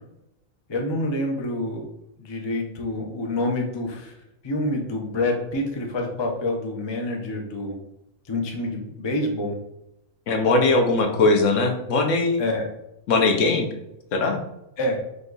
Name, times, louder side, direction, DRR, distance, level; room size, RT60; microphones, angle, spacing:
voice 1, 0.7-1.9 2.2-4.1 4.4-7.8 8.3-9.6 12.4-12.7 14.8-15.0, left 1 dB, 35° left, 1 dB, 0.4 m, -27 dB
voice 2, 10.3-12.4 13.1-13.7 14.1-14.4, left 3 dB, 65° left, 4 dB, 1.0 m, -20 dB
5.1 x 2.3 x 3.9 m, 0.84 s
omnidirectional pair, 1.5 m